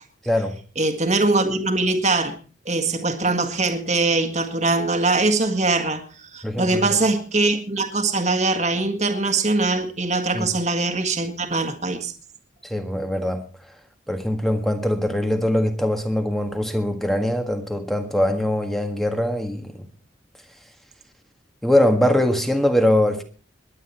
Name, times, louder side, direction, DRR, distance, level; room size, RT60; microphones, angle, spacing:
voice 1, 0.8-2.3 2.7-6.0 6.3-12.1, right 3 dB, 35° right, 1.7 m, -22 dB
voice 2, 6.4-7.0 10.3-10.5 12.6-13.4 14.1-19.8 21.6-23.2, left 1 dB, ahead, 1.6 m, -22 dB
21.5 x 9.7 x 4.3 m
head